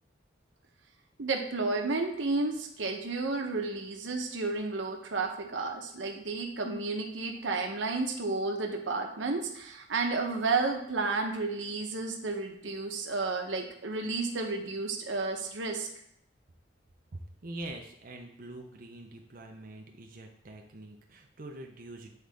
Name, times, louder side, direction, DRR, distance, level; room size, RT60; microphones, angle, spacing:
voice 1, 1.2-15.9, right 3 dB, 90° right, 3 dB, 0.8 m, -32 dB
voice 2, 17.1-22.2, right 2 dB, 50° right, 2 dB, 0.6 m, -44 dB
8.0 x 3.8 x 3.5 m, 0.71 s
head